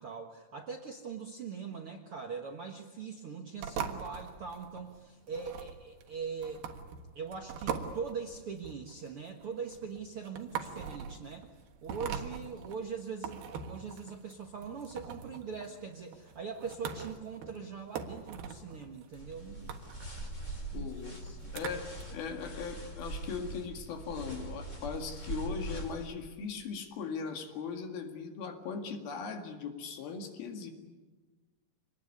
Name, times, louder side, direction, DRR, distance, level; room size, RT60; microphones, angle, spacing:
voice 1, 0.0-6.6 7.1-11.5 11.8-19.9 20.4-21.7, right 5 dB, 55° right, 2 dB, 1.6 m, -42 dB
sound 1, 3.6-22.0, right 7 dB, 70° right, 3.3 m, -42 dB
sound 2, 19.1-26.1, right 2 dB, 20° left, 3.7 m, -42 dB
voice 2, 20.7-21.2 21.5-30.7, left 6 dB, 70° left, 5 dB, 3.9 m, -39 dB
26.0 x 19.5 x 9.8 m, 1.4 s
omnidirectional pair, 4.6 m